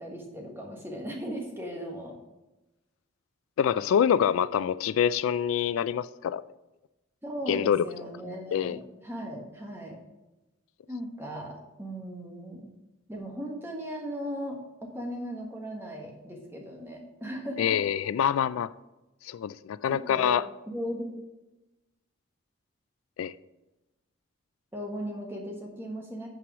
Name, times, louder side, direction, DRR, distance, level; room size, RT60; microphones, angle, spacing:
voice 1, 0.0-2.2 7.2-10.0 10.9-12.7 13.1-17.8 19.9-20.3 20.7-21.2 24.7-26.3, equal, 10° right, 1.4 m, -37 dB
voice 2, 3.6-6.4 7.5-7.9 8.5-8.8 17.6-18.7 19.2-20.4 23.2-23.3, left 8 dB, 85° left, 0.3 m, -25 dB
9.0 x 4.8 x 6.0 m
head